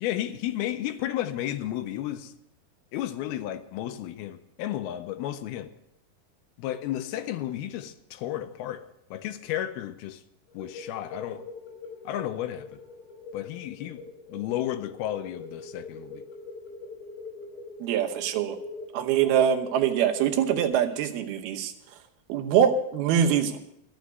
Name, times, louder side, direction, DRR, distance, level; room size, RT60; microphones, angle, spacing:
voice 1, 0.0-2.3 2.9-5.7 6.6-8.8 9.1-10.2 10.5-11.5 12.1-12.8 13.3-14.0 14.3-16.2, left 12 dB, 85° left, 2.6 m, -33 dB
sound 1, 10.5-20.7, left 2 dB, 45° left, 4.3 m, -43 dB
voice 2, 17.8-18.6 18.9-21.7 22.3-23.6, right 9 dB, 80° right, 2.9 m, -24 dB
13.5 x 6.5 x 9.2 m
omnidirectional pair, 4.5 m